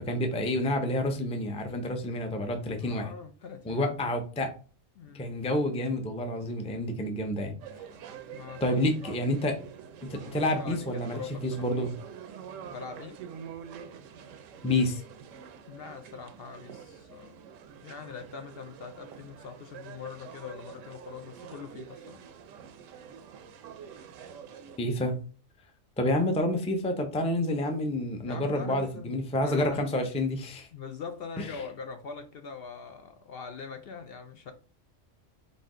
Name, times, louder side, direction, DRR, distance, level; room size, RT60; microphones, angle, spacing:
voice 1, 0.1-3.1 3.7-4.5 5.1-7.5 8.6-9.6 10.0-11.9 14.6-15.0 24.8-25.2 26.0-30.7 31.4-31.5, left 1 dB, 10° left, 5 dB, 0.4 m, -29 dB
voice 2, 2.8-4.0 5.0-5.3 8.3-8.6 9.0-9.2 10.2-11.6 12.6-13.2 15.7-17.4 17.8-22.2 28.3-29.1 29.4-29.9 30.7-34.5, left 5 dB, 60° left, 6 dB, 0.7 m, -42 dB
sound 1, 7.6-24.8, right 7 dB, 80° right, 1.0 m, -47 dB
4.1 x 2.6 x 4.8 m, 0.38 s
omnidirectional pair, 1.3 m